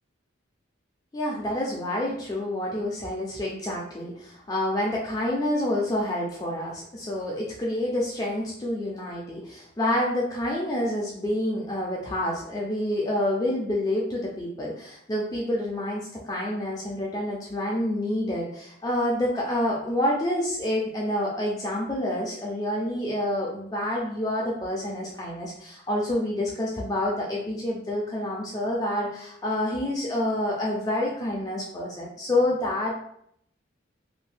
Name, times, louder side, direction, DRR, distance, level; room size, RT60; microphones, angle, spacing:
voice 1, 1.1-32.9, left 1 dB, 20° left, -3 dB, 0.4 m, -28 dB
2.5 x 2.1 x 3.3 m, 0.69 s
head